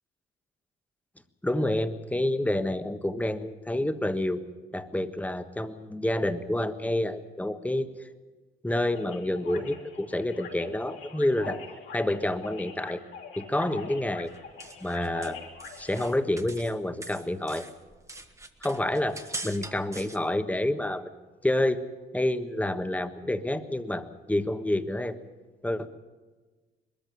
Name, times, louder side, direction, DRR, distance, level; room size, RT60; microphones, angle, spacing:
voice 1, 1.4-4.4 4.7-7.9 8.6-11.6 11.9-13.0 13.4-14.3 14.8-15.4 15.8-17.6 18.6-21.1 21.4-21.8 22.1-25.2 25.6-25.9, left 1 dB, 5° left, 9 dB, 1.3 m, -28 dB
sound 1, 8.9-16.1, left 6 dB, 80° left, 3.7 m, -44 dB
sound 2, 14.3-16.8 17.0-20.2, right 2 dB, 15° right, 1.5 m, -42 dB
21.0 x 14.0 x 9.2 m, 1.3 s
cardioid pair, 90°, 20 cm